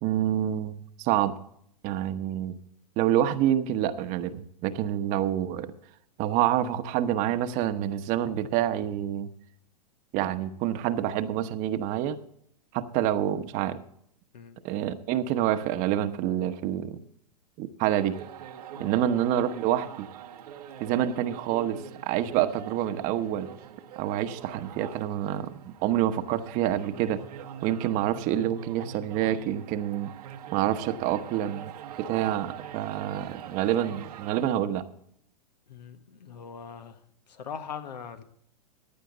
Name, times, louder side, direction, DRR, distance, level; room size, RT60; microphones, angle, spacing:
voice 1, 0.0-1.3 1.8-2.6 3.0-5.7 6.2-9.3 10.1-12.2 12.7-13.8 14.6-17.0 17.6-18.2 18.8-20.1 20.8-23.5 24.0-27.2 27.6-30.1 30.5-31.7 32.0-34.8, right 11 dB, 40° right, 11 dB, 1.0 m, -27 dB
sound 1, 17.9-34.5, right 9 dB, 65° right, 1.1 m, -44 dB
voice 2, 35.7-37.0 37.3-38.2, left 7 dB, 80° left, 9 dB, 1.5 m, -41 dB
15.0 x 10.5 x 4.0 m, 0.69 s
hypercardioid pair, 115°, 21 cm